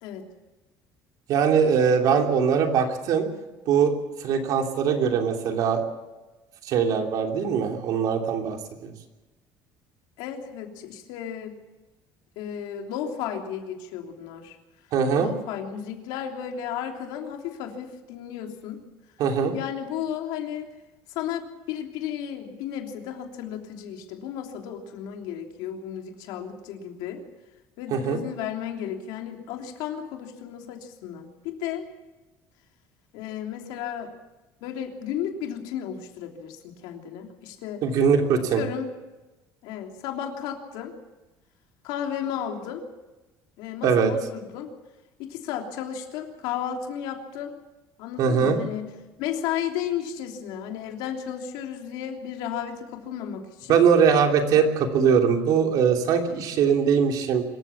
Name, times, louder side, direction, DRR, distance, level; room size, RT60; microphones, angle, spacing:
voice 1, 1.3-3.3 3.7-3.9 4.2-5.8 6.6-8.9 14.9-15.3 19.2-19.5 27.9-28.2 37.8-38.6 43.8-44.1 48.2-48.6 53.7-57.4, right 6 dB, 60° right, 3 dB, 3.1 m, -21 dB
voice 2, 10.2-11.6 12.3-14.6 15.2-18.8 19.5-20.7 21.1-27.2 27.8-31.9 33.1-34.1 34.6-37.8 38.4-38.9 39.6-40.9 41.8-42.8 43.6-44.7 45.3-47.5 48.0-48.9 49.2-53.8, left 9 dB, 85° left, 3 dB, 3.2 m, -33 dB
25.5 x 14.5 x 7.3 m, 1.1 s
cardioid pair, 150°, 7 cm